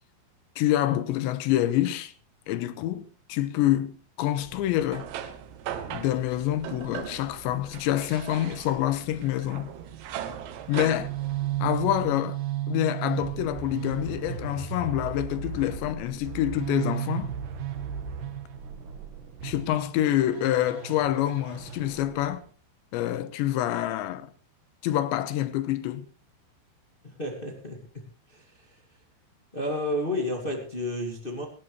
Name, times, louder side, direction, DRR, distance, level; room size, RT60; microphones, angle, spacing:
voice 1, 0.6-2.1 2.5-5.1 5.9-9.7 10.7-11.1 11.6-12.4 12.7-17.3 19.4-22.4 22.9-24.3 24.8-26.1, left 13 dB, 80° left, 3.2 m, -27 dB
sound 1, 4.4-12.1, right 9 dB, 80° right, 3.7 m, -39 dB
sound 2, 10.6-22.5, right 10 dB, 60° right, 2.3 m, -35 dB
voice 2, 27.0-28.8 29.5-31.4, left 1 dB, 35° left, 0.8 m, -32 dB
18.5 x 16.5 x 3.2 m
omnidirectional pair, 5.3 m